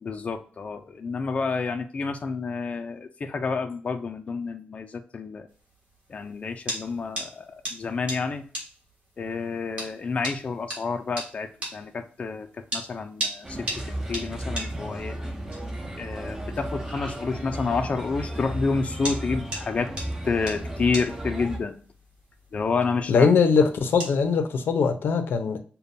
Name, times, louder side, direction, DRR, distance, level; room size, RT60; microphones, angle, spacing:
voice 1, 0.0-5.5 6.1-7.5 7.7-8.4 9.2-12.5 12.7-13.7 14.1-15.2 16.0-19.9 20.2-21.8 22.5-23.3, left 4 dB, 35° left, 0.4 m, -29 dB
sound 1, 5.5-24.3, right 1 dB, 35° right, 1.7 m, -39 dB
Bird, 13.4-21.6, right 1 dB, 15° right, 0.6 m, -34 dB
voice 2, 23.1-25.6, left 5 dB, 85° left, 0.7 m, -21 dB
6.7 x 2.2 x 2.7 m
wide cardioid pair, 170°, 4 cm